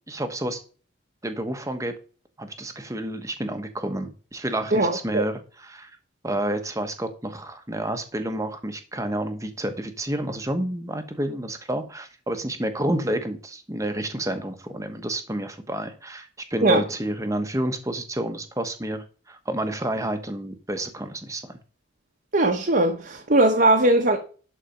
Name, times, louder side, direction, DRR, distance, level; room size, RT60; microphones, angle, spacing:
voice 1, 0.1-0.6 1.2-1.9 2.4-5.9 6.2-21.5, right 1 dB, 15° right, 1.1 m, -29 dB
voice 2, 4.7-5.3 16.6-16.8 22.3-24.2, right 2 dB, 45° right, 1.2 m, -19 dB
11.5 x 4.4 x 5.2 m
head